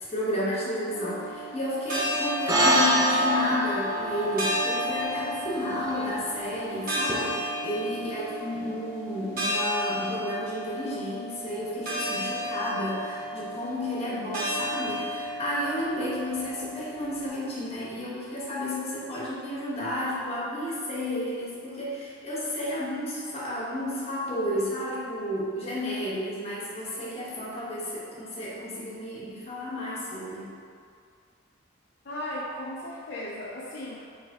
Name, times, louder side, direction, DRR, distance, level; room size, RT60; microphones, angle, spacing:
voice 1, 0.0-30.5, left 1 dB, 30° left, -7 dB, 1.0 m, -32 dB
sound 1, 0.9-17.3, equal, 45° right, 0.9 m, -33 dB
sound 2, 2.5-7.1, right 1 dB, 15° right, 0.5 m, -26 dB
voice 2, 32.0-34.0, left 1 dB, 55° left, -7 dB, 0.5 m, -36 dB
3.3 x 3.1 x 4.6 m, 2.3 s
head